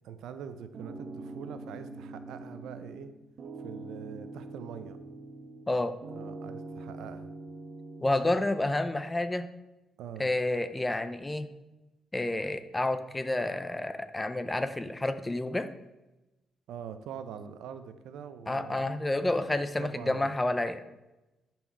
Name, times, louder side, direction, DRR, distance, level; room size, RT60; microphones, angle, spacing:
voice 1, 0.0-3.1 3.6-5.0 6.1-7.3 10.0-10.3 16.7-19.0 19.8-20.3, right 8 dB, 80° right, 10 dB, 0.6 m, -43 dB
sound 1, 0.7-3.1 3.4-5.7 6.0-8.1, right 2 dB, 55° right, 1.0 m, -43 dB
voice 2, 8.0-9.5 10.2-11.5 12.1-15.7 18.5-20.8, left 2 dB, 15° left, 11 dB, 0.6 m, -29 dB
10.5 x 4.5 x 4.5 m, 1.0 s
cardioid pair, 90°, 0 cm